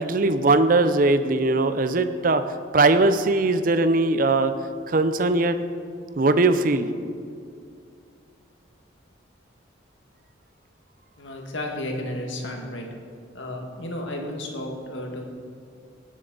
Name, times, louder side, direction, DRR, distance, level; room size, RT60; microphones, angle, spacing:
voice 1, 0.0-2.4 2.7-4.5 4.9-5.6 6.2-6.9, right 2 dB, 45° right, 10 dB, 0.5 m, -20 dB
voice 2, 11.2-12.9 13.3-15.2, left 1 dB, 70° left, 1 dB, 1.7 m, -32 dB
17.5 x 7.4 x 3.9 m, 2.3 s
head